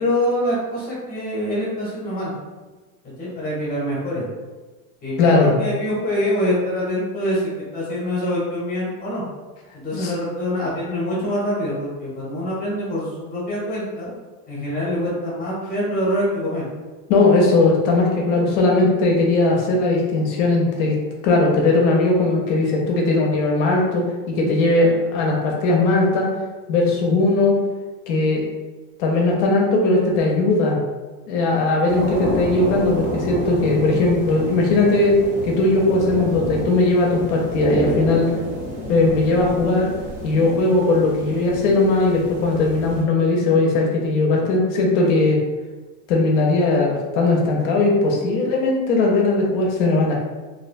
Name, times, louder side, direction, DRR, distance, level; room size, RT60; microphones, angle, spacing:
voice 1, 0.0-2.3 3.2-4.3 5.0-7.4 7.7-9.2 9.7-14.1 14.5-16.6, equal, 20° left, -6 dB, 0.8 m, -25 dB
voice 2, 5.2-5.5 9.9-10.1 17.1-21.0 21.2-26.3 26.7-27.6 28.1-28.4 29.0-30.8 31.3-35.1 35.4-38.3 38.9-39.9 40.2-45.4 46.1-50.1, left 2 dB, 60° left, 0 dB, 0.6 m, -18 dB
sound 1, 31.9-43.0, right 1 dB, 30° right, 0.4 m, -29 dB
2.6 x 2.1 x 2.5 m, 1.3 s
supercardioid pair, 155°, 42 cm